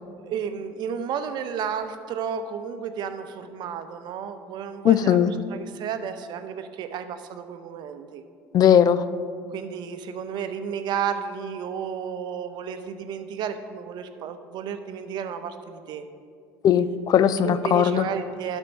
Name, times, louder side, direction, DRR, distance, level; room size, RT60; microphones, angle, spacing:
voice 1, 0.2-5.2 5.5-8.2 9.5-16.0 17.4-18.6, right 7 dB, 55° right, 9 dB, 0.7 m, -32 dB
voice 2, 4.8-5.3 8.5-9.0 16.6-18.1, left 9 dB, 45° left, 14 dB, 0.5 m, -18 dB
11.5 x 4.5 x 5.3 m, 2.2 s
hypercardioid pair, 80°, 9 cm